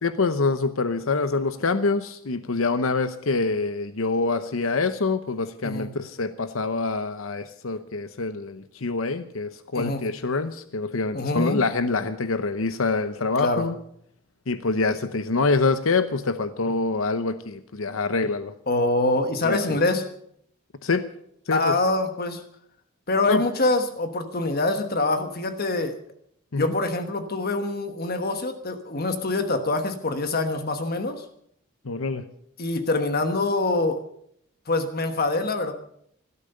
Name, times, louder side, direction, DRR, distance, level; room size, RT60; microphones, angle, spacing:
voice 1, 0.0-13.8 14.5-18.5 19.4-19.6 20.8-21.1 21.5-21.8 23.3-23.4 26.5-26.7 31.8-32.2, left 3 dB, 85° left, 11 dB, 0.9 m, -25 dB
voice 2, 11.1-11.6 13.4-13.7 18.7-20.0 21.5-22.4 23.1-26.0 26.6-31.2 32.6-34.0 34.7-35.7, left 2 dB, 50° left, 8 dB, 1.2 m, -25 dB
17.0 x 12.5 x 6.7 m, 0.70 s
head